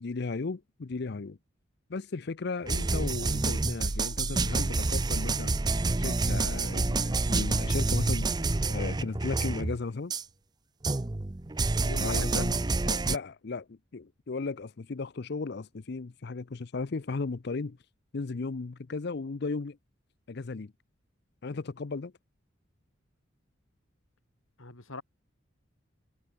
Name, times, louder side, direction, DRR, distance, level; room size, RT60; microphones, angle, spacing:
voice 1, 0.0-1.4 1.9-5.5 6.0-8.3 8.7-10.1 12.0-12.6 12.8-17.8 18.1-19.8 20.3-20.7 21.4-22.1, left 4 dB, 55° left, 0.6 m, -35 dB
sound 1, 2.7-9.8 10.1-10.2 10.8-13.2, right 3 dB, 20° right, 0.6 m, -28 dB
voice 2, 11.8-12.5 24.6-25.0, left 2 dB, 85° left, 3.2 m, -40 dB
head